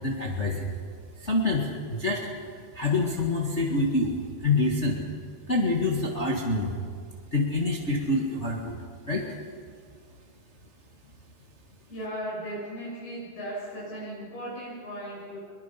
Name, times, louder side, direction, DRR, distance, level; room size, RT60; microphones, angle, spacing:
voice 1, 0.0-0.7 1.2-2.3 2.7-5.0 5.5-6.7 7.3-8.7 9.1-9.2, left 2 dB, 55° left, 0 dB, 0.7 m, -26 dB
voice 2, 11.9-15.4, equal, 75° left, -7 dB, 9.2 m, -36 dB
24.0 x 22.0 x 5.8 m, 2.1 s
omnidirectional pair, 4.6 m